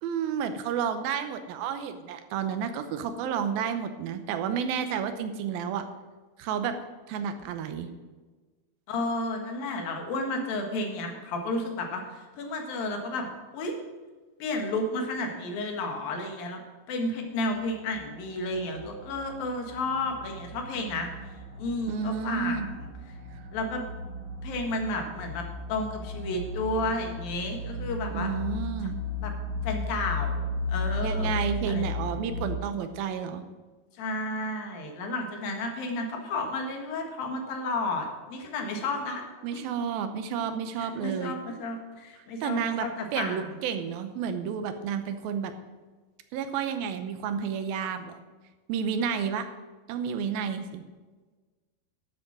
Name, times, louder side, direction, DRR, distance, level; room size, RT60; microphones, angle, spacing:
voice 1, 0.0-5.9 6.4-6.8 7.1-7.9 21.9-22.7 28.1-29.0 31.0-33.4 39.4-41.4 42.4-42.9 43.1-45.5 46.3-48.2 48.7-49.5 49.9-50.8, right 7 dB, 80° right, 9 dB, 2.6 m, -31 dB
voice 2, 8.9-13.8 14.4-16.6 16.9-21.1 21.6-22.9 23.5-23.8 24.4-28.3 29.2-29.3 29.6-31.3 31.7-32.1 34.0-39.2 40.8-43.4, left 2 dB, 70° left, 3 dB, 3.3 m, -32 dB
sound 1, 17.6-32.5, left 2 dB, 40° left, 2.0 m, -35 dB
12.5 x 7.8 x 6.1 m, 1.3 s
omnidirectional pair, 4.3 m